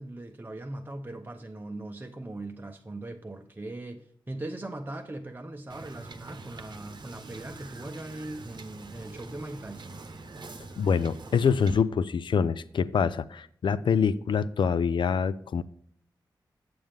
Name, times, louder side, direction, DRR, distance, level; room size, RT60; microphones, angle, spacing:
voice 1, 0.0-10.0, right 2 dB, 25° right, 0.7 m, -40 dB
Wind / Boat Water vehicle, 5.7-11.8, right 3 dB, 60° right, 0.8 m, -45 dB
voice 2, 10.8-15.6, left 6 dB, 70° left, 0.4 m, -25 dB
7.7 x 7.2 x 3.4 m
cardioid pair, 45°, 8 cm